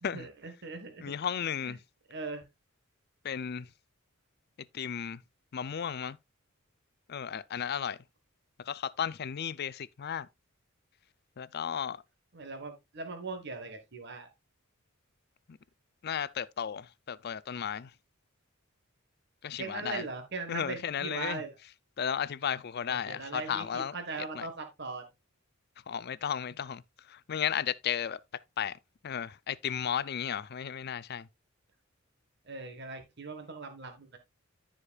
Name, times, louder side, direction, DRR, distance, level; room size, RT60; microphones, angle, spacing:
voice 1, 0.0-1.1 1.6-1.7 2.1-2.4 12.3-14.3 19.6-21.5 22.9-25.1 32.4-34.2, right 4 dB, 55° right, 1.5 m, -40 dB
voice 2, 1.0-1.8 3.2-3.7 4.6-5.2 5.5-6.2 7.1-8.0 8.6-10.3 11.4-12.0 15.5-15.6 16.0-17.9 19.4-20.1 20.5-21.4 22.0-23.9 24.3-24.5 25.9-28.8 29.0-31.3, left 8 dB, 50° left, 0.4 m, -34 dB
14.5 x 5.0 x 2.4 m
head